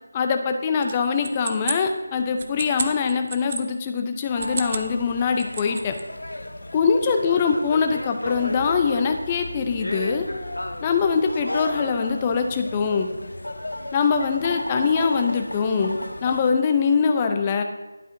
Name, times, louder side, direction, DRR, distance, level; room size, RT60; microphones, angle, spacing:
voice 1, 0.1-5.9 6.7-10.3 10.8-13.1 13.9-17.6, left 5 dB, 20° left, 6 dB, 0.5 m, -23 dB
sound 1, 0.8-3.6 4.3-4.9 5.2-6.0, right 4 dB, 35° right, 0.5 m, -32 dB
sound 2, 4.3-16.5, left 1 dB, 85° left, 0.6 m, -34 dB
11.5 x 4.9 x 2.7 m, 1.1 s
figure-of-eight pair, 165°, 0 cm